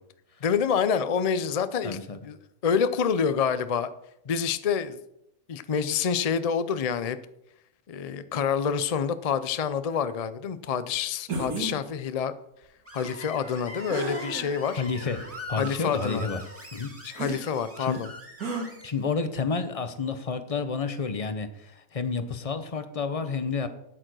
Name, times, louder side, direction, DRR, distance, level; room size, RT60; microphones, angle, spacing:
voice 1, 0.4-2.0 2.3-2.4 2.6-3.9 4.3-5.0 5.5-7.2 7.9-12.3 12.9-14.8 15.5-16.3 17.0-18.1, left 7 dB, 65° left, 12 dB, 0.3 m, -27 dB
voice 2, 1.8-2.2 14.8-16.4 16.7-17.0 17.8-18.0 18.8-23.7, left 4 dB, 30° left, 10 dB, 0.7 m, -30 dB
sound 1, 11.3-11.8 13.9-14.5 15.2-15.3 17.2-17.4 18.4-18.7, right 2 dB, 80° right, 2.6 m, -32 dB
Screech, 12.9-18.9, equal, 10° right, 2.2 m, -42 dB
9.0 x 8.8 x 6.1 m, 0.82 s
omnidirectional pair, 1.5 m